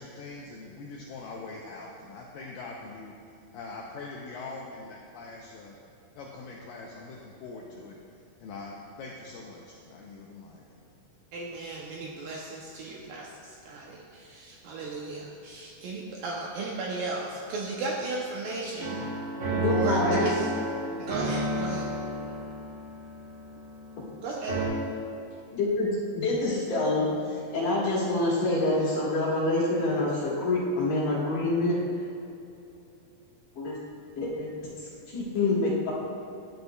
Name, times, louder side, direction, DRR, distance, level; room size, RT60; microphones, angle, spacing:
voice 1, 0.0-3.2 3.5-5.8 6.1-8.0 8.4-10.6, left 3 dB, 80° left, -2 dB, 2.0 m, -42 dB
voice 2, 11.3-19.0 19.6-20.5 21.0-21.9 24.2-24.6, right 3 dB, 80° right, -2 dB, 2.1 m, -35 dB
sound 1, 18.8-24.2 24.5-24.7, right 2 dB, 40° right, 2.0 m, -31 dB
voice 3, 19.5-20.2 25.5-25.9 26.1-31.8 33.5-33.8 34.1-34.5 34.8-35.9, left 2 dB, 60° left, -7 dB, 3.0 m, -26 dB
12.0 x 8.0 x 2.2 m, 2.7 s
omnidirectional pair, 4.6 m